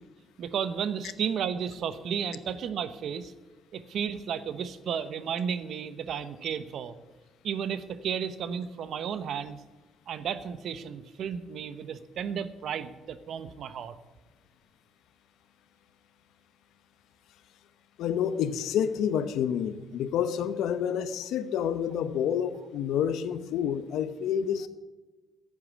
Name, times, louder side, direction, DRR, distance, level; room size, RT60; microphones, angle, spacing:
voice 1, 0.4-3.3 3.7-7.0 7.4-9.6 10.1-14.0, right 7 dB, 70° right, 13 dB, 0.9 m, -33 dB
voice 2, 18.0-24.7, left 8 dB, 85° left, 12 dB, 0.9 m, -29 dB
11.0 x 8.6 x 9.7 m, 1.1 s
cardioid pair, 90°, 0 cm